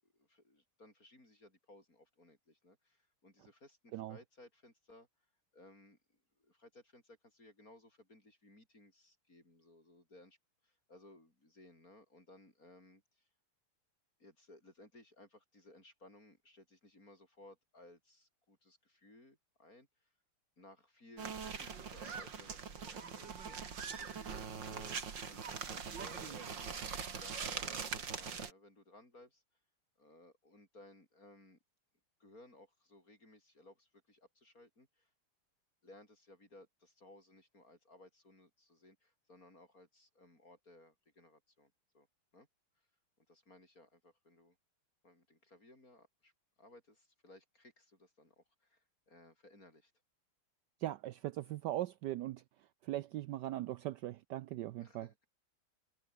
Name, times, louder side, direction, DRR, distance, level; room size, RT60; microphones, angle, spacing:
voice 1, 0.0-5.1 5.5-6.0 6.4-10.4 10.6-13.3 14.2-20.1 20.6-29.4 30.0-31.6 32.2-35.1 35.8-42.1 42.3-42.5 43.3-44.6 45.0-46.3 46.6-49.9 54.8-55.3, left 2 dB, 40° left, 8.6 m, -61 dB
sound 1, 21.2-28.5, right 6 dB, 55° right, 2.8 m, -42 dB
voice 2, 50.8-52.4 52.8-55.1, right 14 dB, 85° right, 0.9 m, -39 dB
omnidirectional pair, 2.4 m